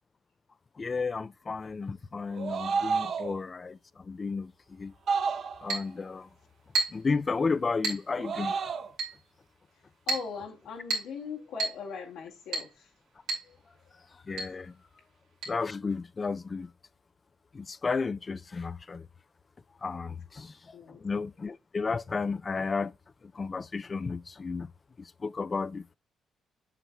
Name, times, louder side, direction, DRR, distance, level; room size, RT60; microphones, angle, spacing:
voice 1, 0.8-4.9 5.6-6.3 6.9-8.5 14.3-14.8 15.5-16.7 17.5-19.1 19.8-20.7 21.0-22.9 23.3-24.7 25.0-26.0, left 4 dB, 35° left, 0.3 m, -33 dB
sound 1, 2.3-3.4 5.1-5.8 8.1-8.9, right 5 dB, 60° right, 0.7 m, -30 dB
Chink clink, 5.7-5.9 6.8-7.1 7.8-8.1 9.0-9.2 10.1-10.3 10.9-11.2 11.6-11.8 12.5-12.7 13.3-13.5 13.8-13.9 14.4-14.5 15.4-15.5, right 2 dB, 90° right, 2.3 m, -31 dB
voice 2, 10.1-12.9 13.4-13.6 20.7-21.0, left 6 dB, 90° left, 2.0 m, -40 dB
7.2 x 5.6 x 2.3 m
cardioid pair, 90°, 0 cm